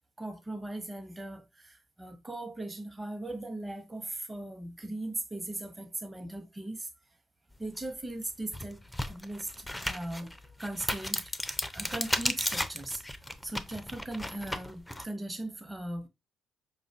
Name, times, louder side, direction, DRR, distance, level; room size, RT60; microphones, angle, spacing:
voice 1, 0.2-6.9 7.6-16.1, right 1 dB, 20° right, 0.9 m, -39 dB
sound 1, 7.8-7.9 8.4-15.0, left 1 dB, 10° left, 0.4 m, -34 dB
5.0 x 2.4 x 2.4 m
figure-of-eight pair, 45°, 0 cm